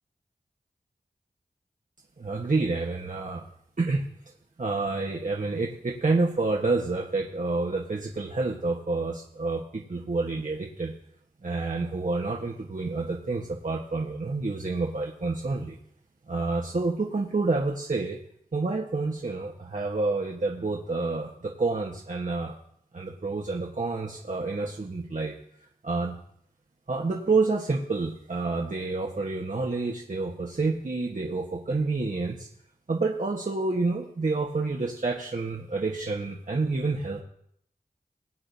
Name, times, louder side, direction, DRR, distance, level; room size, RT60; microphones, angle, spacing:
voice 1, 2.2-3.4 3.8-4.0 4.6-10.9 11.4-15.8 16.3-18.2 18.5-22.5 22.9-25.4 25.8-26.2 26.9-32.5 32.9-37.2, right 3 dB, 55° right, -1 dB, 1.4 m, -28 dB
21.5 x 8.7 x 2.8 m, 0.71 s
cardioid pair, 45°, 16 cm